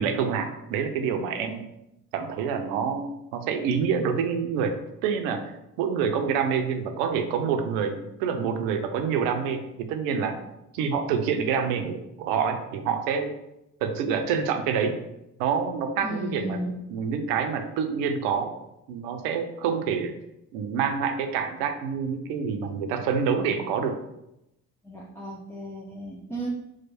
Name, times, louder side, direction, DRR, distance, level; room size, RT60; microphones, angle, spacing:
voice 1, 0.0-1.6 2.1-5.4 5.8-10.4 10.7-13.3 13.8-14.9 15.4-16.6 16.9-18.5 18.9-20.1 20.5-24.0, right 6 dB, 55° right, 5 dB, 0.7 m, -27 dB
voice 2, 16.0-16.7 24.8-26.5, right 1 dB, 5° left, -4 dB, 0.4 m, -34 dB
4.7 x 2.1 x 4.2 m, 0.86 s
figure-of-eight pair, 50°, 46 cm